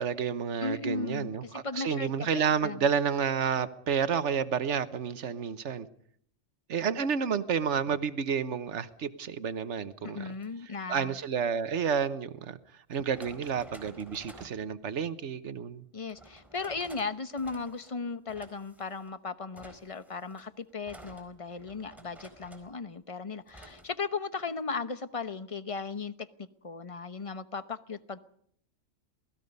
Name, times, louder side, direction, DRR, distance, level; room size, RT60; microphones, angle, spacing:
voice 1, 0.0-5.9 6.7-10.3 10.9-12.6 12.9-15.8, right 7 dB, 65° right, 13 dB, 1.4 m, -30 dB
voice 2, 0.6-2.9 10.0-11.1 15.9-28.2, left 4 dB, 30° left, 12 dB, 1.0 m, -37 dB
sound 1, 10.3-10.5 12.1-12.2 12.9-14.6 16.1-17.1 17.4-17.9 18.3-19.1 19.6-22.8 23.5-23.9, right 1 dB, ahead, 4.4 m, -52 dB
27.5 x 19.0 x 5.4 m, 0.64 s
omnidirectional pair, 1.3 m